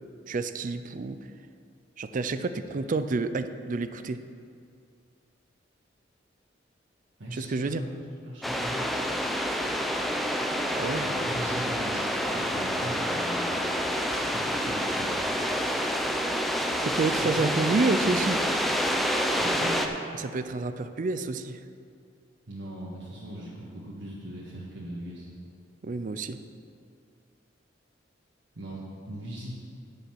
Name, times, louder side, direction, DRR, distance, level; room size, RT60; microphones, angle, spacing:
voice 1, 0.3-1.2 2.0-4.2 7.3-7.8 10.8-11.1 16.8-18.5 20.2-21.6 25.8-26.4, right 3 dB, 45° right, 11 dB, 0.4 m, -29 dB
voice 2, 7.2-7.9 8.2-8.8 11.0-13.5 14.1-15.2 17.2-17.9 19.4-19.8 22.5-25.3 28.5-29.5, right 1 dB, 85° right, -7 dB, 1.6 m, -39 dB
sound 1, 8.4-19.9, equal, ahead, 0.6 m, -28 dB
10.0 x 5.6 x 7.5 m, 2.3 s
head